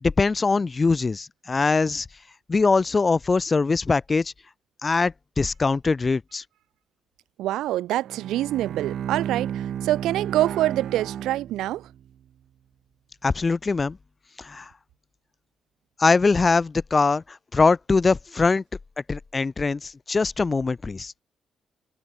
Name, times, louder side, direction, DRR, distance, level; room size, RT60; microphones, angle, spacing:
voice 1, 0.0-2.1 2.5-4.3 4.8-6.4 13.2-14.0 14.4-14.7 16.0-18.6 19.1-21.1, left 4 dB, 35° left, 0.4 m, -22 dB
voice 2, 7.4-11.9, right 14 dB, 85° right, 1.6 m, -25 dB
Bowed string instrument, 8.0-12.1, right 10 dB, 70° right, 2.3 m, -33 dB
supercardioid pair, 60°, 0 cm